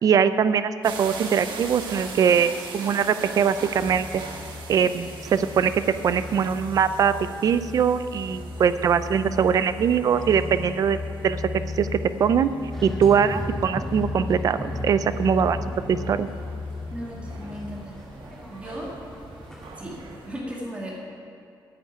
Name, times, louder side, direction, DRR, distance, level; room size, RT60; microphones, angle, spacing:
voice 1, 0.0-4.2 4.7-5.1 5.3-7.1 7.4-11.4 11.8-12.5 12.8-15.6 15.9-16.3, right 7 dB, 50° right, 12 dB, 0.5 m, -22 dB
sound 1, 0.8-20.3, right 4 dB, 85° right, 1.5 m, -42 dB
sound 2, 3.8-17.8, left 3 dB, 60° left, 0.9 m, -36 dB
sound 3, 12.7-20.2, equal, 5° left, 2.2 m, -38 dB
voice 2, 16.9-18.0 18.5-19.0 19.8-20.0 20.2-20.9, equal, 15° right, -4 dB, 2.1 m, -36 dB
9.5 x 8.0 x 9.0 m, 2.6 s
wide cardioid pair, 175°, 8 cm